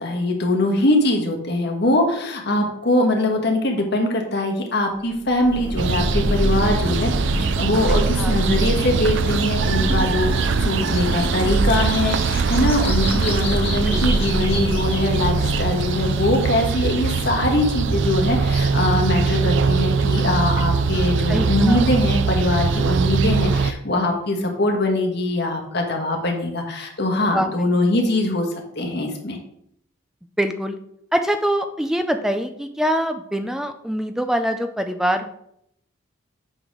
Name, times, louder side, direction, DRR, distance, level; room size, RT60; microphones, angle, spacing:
voice 1, 0.0-28.4 28.8-29.4, left 1 dB, 50° left, 2 dB, 1.4 m, -22 dB
Thunder, 5.1-16.1, equal, 25° right, 1.7 m, -28 dB
sound 1, 5.8-23.7, right 5 dB, 60° right, 0.4 m, -22 dB
voice 2, 7.9-8.3 13.9-14.2 21.3-21.8 27.3-27.5 30.4-30.8 31.1-35.3, equal, ahead, 7 dB, 0.5 m, -24 dB
sound 2, 8.8-16.7, left 2 dB, 30° left, 2.4 m, -34 dB
7.8 x 4.3 x 5.0 m, 0.74 s
head